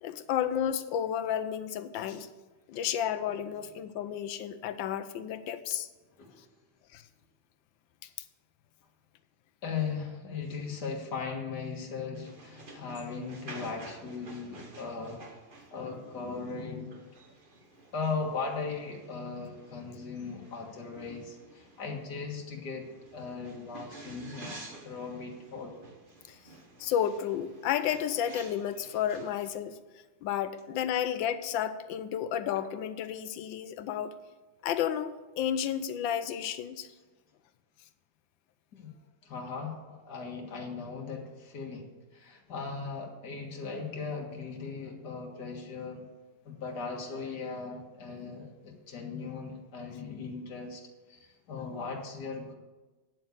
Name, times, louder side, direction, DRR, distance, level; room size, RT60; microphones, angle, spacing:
voice 1, 0.0-2.3 2.7-5.9 6.9-7.0 26.3-26.4 26.8-29.8 30.2-34.1 34.6-36.9, left 9 dB, 85° left, 12 dB, 1.4 m, -32 dB
voice 2, 9.6-15.2 15.7-17.0 17.9-22.9 23.1-25.8 38.7-38.9 39.2-46.0 46.4-50.8 51.1-52.5, left 5 dB, 60° left, 1 dB, 2.2 m, -38 dB
sound 1, 12.1-29.5, right 2 dB, 30° right, 1.4 m, -51 dB
9.4 x 7.7 x 6.6 m, 1.2 s
omnidirectional pair, 2.1 m